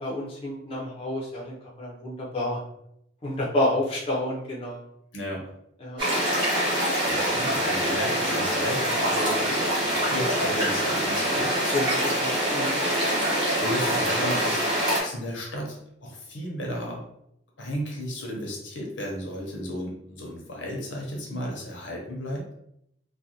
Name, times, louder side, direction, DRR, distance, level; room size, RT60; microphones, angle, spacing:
voice 1, 0.0-2.6 3.2-4.8 5.8-6.0 11.7-12.8, left 1 dB, 30° left, -4 dB, 0.5 m, -29 dB
voice 2, 5.1-5.4 7.0-11.6 13.6-14.6 14.9-17.0 17.6-22.5, equal, 80° left, -1 dB, 0.8 m, -34 dB
sound 1, 6.0-15.0, equal, 25° right, 0.9 m, -25 dB
2.4 x 2.1 x 2.8 m, 0.77 s
head